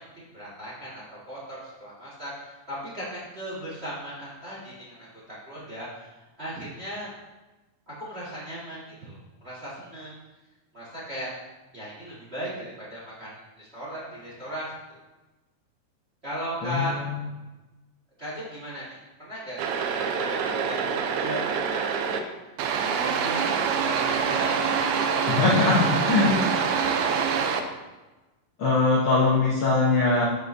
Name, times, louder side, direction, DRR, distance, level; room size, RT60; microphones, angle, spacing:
voice 1, 0.0-7.1 7.9-10.1 10.7-11.3 11.7-15.0 16.2-17.0 18.2-19.7 20.0-22.2 23.0-24.6 26.1-27.0, equal, 30° right, -7 dB, 1.2 m, -37 dB
voice 2, 16.6-17.2 25.3-26.4 28.6-30.2, left 3 dB, 80° left, -5 dB, 1.1 m, -22 dB
sound 1, 19.6-22.2 22.6-27.6, right 6 dB, 85° right, 1.6 m, -25 dB
12.5 x 5.3 x 2.7 m, 1.1 s
omnidirectional pair, 4.1 m